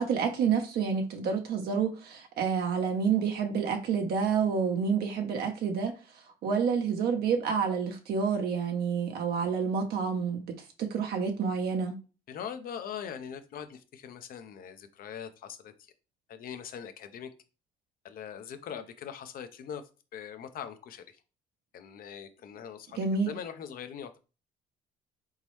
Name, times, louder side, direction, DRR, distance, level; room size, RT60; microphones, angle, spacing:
voice 1, 0.0-5.9 6.4-12.0 23.0-23.3, right 6 dB, 70° right, 0.9 m, -29 dB
voice 2, 12.3-15.9 16.3-17.3 18.0-19.8 20.1-21.2 21.7-24.2, left 8 dB, 60° left, 0.8 m, -42 dB
4.1 x 3.7 x 3.1 m
cardioid pair, 110°, 17 cm